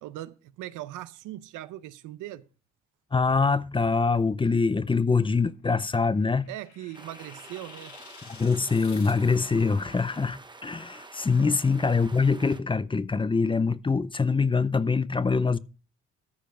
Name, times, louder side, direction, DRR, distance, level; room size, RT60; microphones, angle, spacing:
voice 1, 0.0-2.5 6.5-8.0 11.4-11.5, right 14 dB, 90° right, 0.7 m, -40 dB
voice 2, 3.1-6.5 8.2-15.6, left 4 dB, 15° left, 0.5 m, -24 dB
sound 1, 5.8-9.8, left 8 dB, 70° left, 1.5 m, -51 dB
sound 2, 6.9-12.6, right 3 dB, 15° right, 0.9 m, -48 dB
13.5 x 5.0 x 5.9 m
cardioid pair, 90°, 30 cm